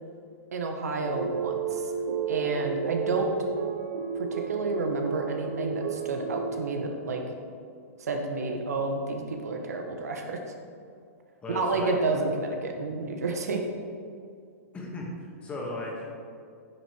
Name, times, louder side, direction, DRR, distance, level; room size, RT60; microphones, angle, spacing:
voice 1, 0.5-1.9 2.3-3.3 4.1-7.2 8.0-10.4 11.5-13.6, right 3 dB, 90° right, 3 dB, 1.6 m, -30 dB
sound 1, 1.0-7.0, right 7 dB, 70° right, 0.9 m, -32 dB
voice 2, 11.4-11.9 14.7-16.0, left 2 dB, 15° left, -2 dB, 1.8 m, -36 dB
10.0 x 7.6 x 4.7 m, 2.3 s
hypercardioid pair, 150°, 8 cm